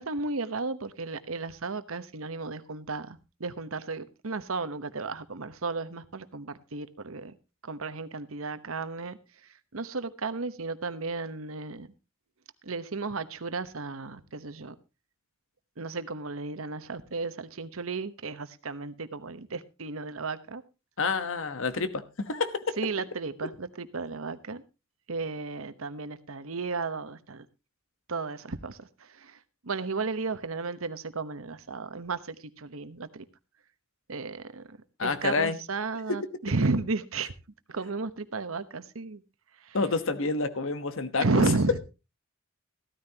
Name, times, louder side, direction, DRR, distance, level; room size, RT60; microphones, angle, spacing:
voice 1, 0.0-7.3 7.6-9.2 9.7-11.9 12.6-14.7 15.8-20.6 22.8-24.6 25.1-27.5 28.1-29.4 29.6-33.2 34.1-37.3 37.7-39.2 39.6-39.8 41.2-41.8, right 3 dB, 80° right, 1.1 m, -33 dB
voice 2, 21.0-22.7 35.0-35.6 36.1-36.2 39.7-41.5, left 4 dB, 65° left, 1.1 m, -28 dB
15.0 x 13.5 x 2.9 m
head